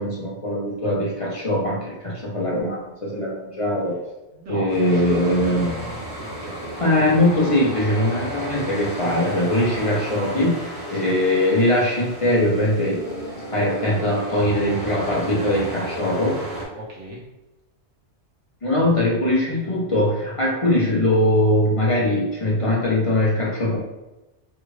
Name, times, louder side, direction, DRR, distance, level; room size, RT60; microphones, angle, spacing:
voice 1, 0.0-4.0 4.5-5.8 6.8-13.2 13.5-16.4 18.6-23.8, left 1 dB, 35° left, -5 dB, 0.6 m, -21 dB
voice 2, 4.3-7.1 10.9-11.2 16.8-17.2, right 1 dB, 90° right, -3 dB, 1.3 m, -37 dB
sound 1, 4.7-16.7, right 1 dB, 30° right, 1.1 m, -33 dB
3.4 x 2.4 x 3.1 m, 1.0 s
omnidirectional pair, 1.2 m